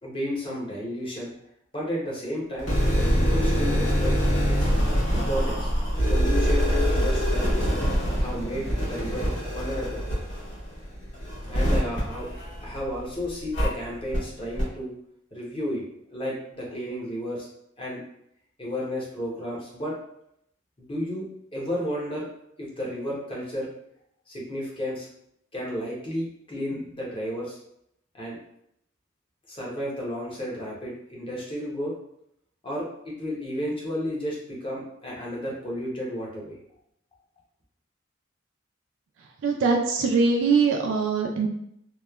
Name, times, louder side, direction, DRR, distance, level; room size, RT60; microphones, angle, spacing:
voice 1, 0.0-1.3 1.7-4.1 4.5-4.7 5.1-5.7 6.1-7.9 8.2-10.0 11.5-12.3 12.6-14.9 15.3-17.5 17.8-18.0 18.6-20.0 20.8-21.3 21.5-22.3 22.6-23.7 24.3-25.1 25.5-27.6 28.1-28.4 29.5-31.9 32.6-36.6, equal, 25° left, -4 dB, 0.7 m, -32 dB
sound 1, 2.6-13.0 13.5-13.7 14.1-14.2 14.6-14.7, equal, 60° left, 1.3 m, -24 dB
voice 2, 39.2-41.5, right 4 dB, 75° right, 2 dB, 0.4 m, -23 dB
3.0 x 2.1 x 2.3 m, 0.74 s
head